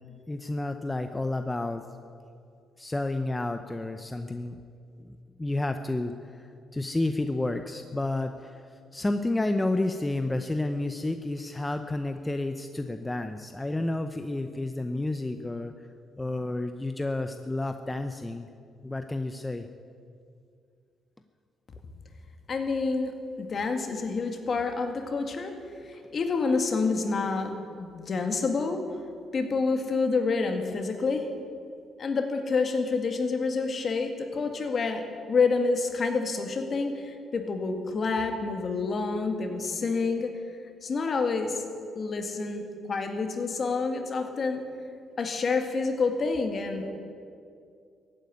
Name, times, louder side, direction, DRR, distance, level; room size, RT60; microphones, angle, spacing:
voice 1, 0.1-1.8 2.8-4.6 5.0-15.7 16.2-18.5 18.8-19.7, left 2 dB, 15° left, 7 dB, 0.7 m, -31 dB
voice 2, 22.5-25.5 25.8-27.5 27.8-28.8 29.3-31.3 32.0-40.3 40.8-41.6 42.0-44.6 45.2-47.0, left 4 dB, 45° left, 5 dB, 2.1 m, -28 dB
15.5 x 9.3 x 9.5 m, 2.4 s
cardioid pair, 90°, 0 cm